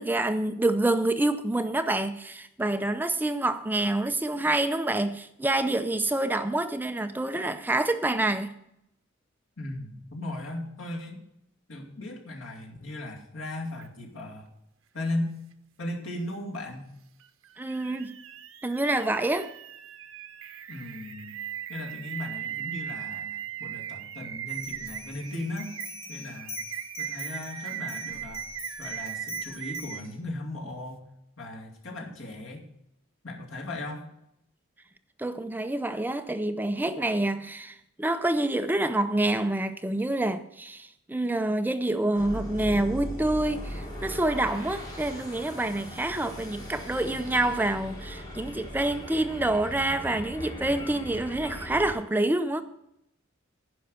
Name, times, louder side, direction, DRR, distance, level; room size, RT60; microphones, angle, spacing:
voice 1, 0.0-8.5 17.6-18.1 18.6-19.5 35.2-52.6, right 2 dB, 10° right, 0.5 m, -27 dB
voice 2, 9.6-11.2 11.7-14.5 14.9-15.3 15.8-16.9 20.7-21.4 21.7-25.8 26.1-26.6 27.0-28.5 28.8-31.1 31.4-32.7 33.2-34.1, left 1 dB, 80° left, 2.5 m, -37 dB
sound 1, 13.8-13.9 17.2-30.1, right 11 dB, 85° right, 0.7 m, -38 dB
sound 2, 24.5-30.1, left 4 dB, 55° left, 4.8 m, -43 dB
sound 3, 42.1-51.9, equal, 20° left, 2.7 m, -39 dB
10.5 x 5.6 x 8.0 m
head